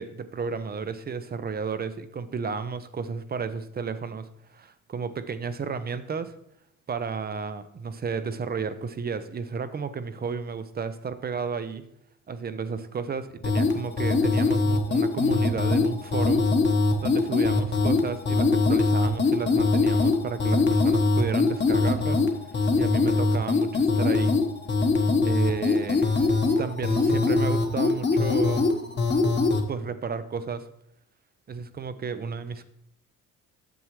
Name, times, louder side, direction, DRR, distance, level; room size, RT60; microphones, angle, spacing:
voice 1, 0.0-6.3 6.9-11.8 12.3-16.4 17.0-22.2 22.5-24.4 25.2-26.1 26.6-28.7 29.7-30.7 31.5-32.6, right 5 dB, 30° right, 12 dB, 0.6 m, -32 dB
sound 1, 13.4-29.6, left 3 dB, 30° left, 1.2 m, -23 dB
9.1 x 7.2 x 3.1 m, 0.78 s
cardioid pair, 100°, 34 cm